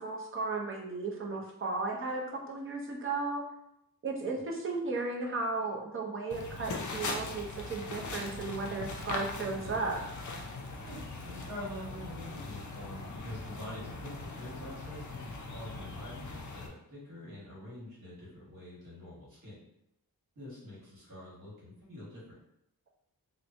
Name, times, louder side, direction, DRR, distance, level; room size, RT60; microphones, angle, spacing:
voice 1, 0.0-3.4 4.0-10.0, right 3 dB, 35° right, -1 dB, 0.5 m, -35 dB
sound 1, 6.3-16.7, left 3 dB, 55° left, 0.5 m, -40 dB
voice 2, 10.8-19.6 20.3-22.2, left 1 dB, 55° right, -7 dB, 1.4 m, -45 dB
2.9 x 2.1 x 2.5 m, 0.80 s
wide cardioid pair, 110°, 37 cm